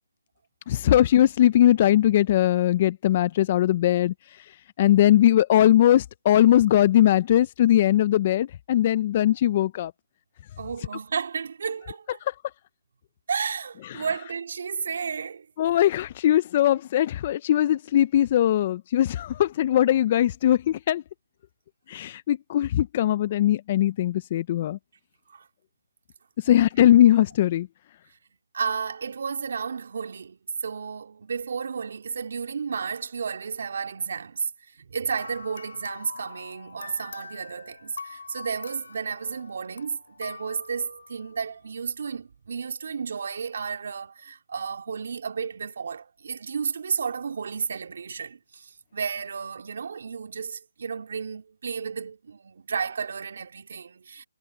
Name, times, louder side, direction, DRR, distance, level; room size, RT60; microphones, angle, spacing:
voice 1, 0.7-4.1 4.8-9.9 15.6-21.0 21.9-24.8 26.5-27.7, left 12 dB, 30° left, 0.5 m, -20 dB
voice 2, 10.6-12.2 13.3-15.5 25.3-25.5 26.5-26.7 28.5-34.5 34.8-54.3, right 6 dB, 55° right, 3.6 m, -32 dB
sound 1, 35.1-41.6, left 4 dB, 65° left, 4.1 m, -44 dB
hypercardioid pair, 165°, 0 cm